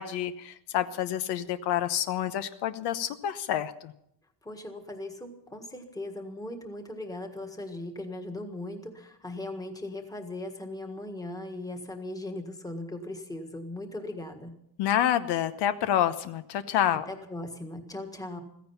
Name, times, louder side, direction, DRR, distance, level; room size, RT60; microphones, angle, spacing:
voice 1, 0.0-3.9 14.8-17.1, left 11 dB, 70° left, 11 dB, 1.0 m, -28 dB
voice 2, 4.4-14.5 16.9-18.4, left 1 dB, 10° left, 4 dB, 1.6 m, -38 dB
15.5 x 15.0 x 5.8 m, 0.73 s
cardioid pair, 170°, 41 cm